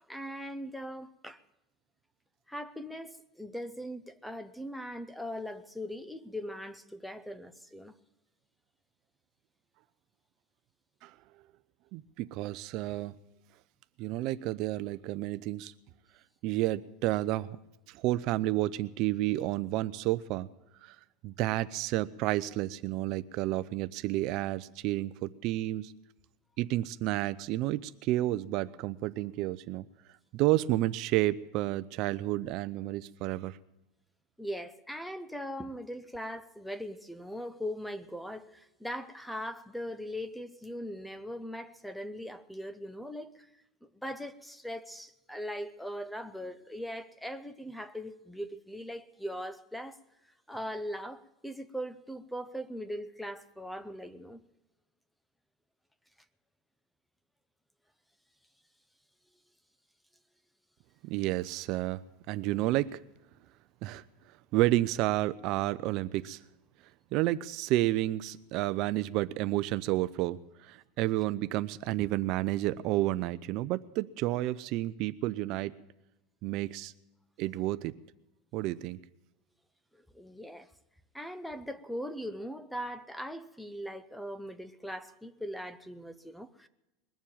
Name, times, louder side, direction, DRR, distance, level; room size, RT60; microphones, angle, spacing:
voice 1, 0.1-1.4 2.5-7.9 34.4-43.5 43.8-50.0 50.5-54.4 79.9-80.7 81.1-86.7, equal, ahead, 0.8 m, -40 dB
voice 2, 11.9-13.1 14.0-15.7 16.4-17.6 17.9-20.5 20.8-21.0 21.2-25.9 26.6-29.8 30.3-33.6 61.0-62.0 62.3-63.0 63.8-64.0 64.5-66.4 67.1-75.7 76.4-76.9 77.4-77.9 78.5-79.0, right 16 dB, 50° right, 0.6 m, -30 dB
21.0 x 7.2 x 8.9 m
supercardioid pair, 150°, 0 cm